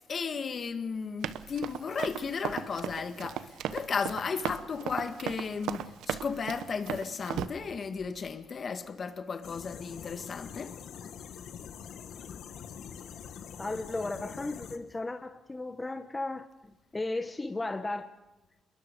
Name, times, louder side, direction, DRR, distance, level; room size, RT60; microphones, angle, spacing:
voice 1, 0.1-10.8, left 5 dB, 45° left, 1.7 m, -34 dB
Run, 1.2-7.5, right 10 dB, 85° right, 1.0 m, -36 dB
sound 1, 9.4-14.8, left 8 dB, 75° left, 1.7 m, -44 dB
voice 2, 13.6-16.5 16.9-18.1, left 2 dB, 20° left, 1.1 m, -35 dB
27.5 x 22.5 x 5.3 m
cardioid pair, 90°, 0 cm